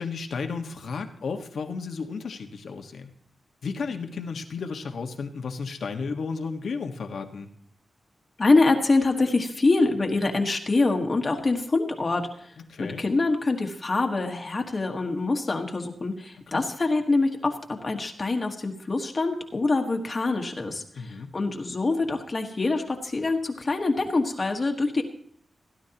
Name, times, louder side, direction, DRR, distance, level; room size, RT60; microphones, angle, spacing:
voice 1, 0.0-3.1 3.6-7.5 12.7-13.0 20.9-21.3, left 5 dB, 75° left, 5 dB, 1.4 m, -33 dB
voice 2, 8.4-12.5 12.8-25.0, left 3 dB, 30° left, 4 dB, 1.4 m, -25 dB
17.0 x 11.5 x 2.9 m, 0.64 s
wide cardioid pair, 145°, 0 cm